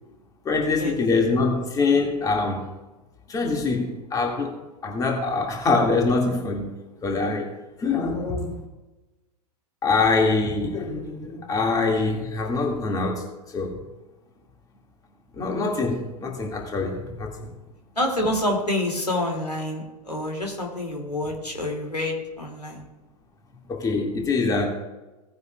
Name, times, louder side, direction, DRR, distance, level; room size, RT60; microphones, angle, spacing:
voice 1, 0.4-2.6 3.3-4.6 4.8-6.7 7.0-7.5 7.8-8.6 9.8-13.2 13.5-13.8 15.4-17.5 23.7-24.7, left 3 dB, 15° left, 1 dB, 2.1 m, -24 dB
voice 2, 18.0-22.8, left 1 dB, 85° left, 1 dB, 2.6 m, -27 dB
18.0 x 9.5 x 2.4 m, 1.1 s
figure-of-eight pair, 100°, 20 cm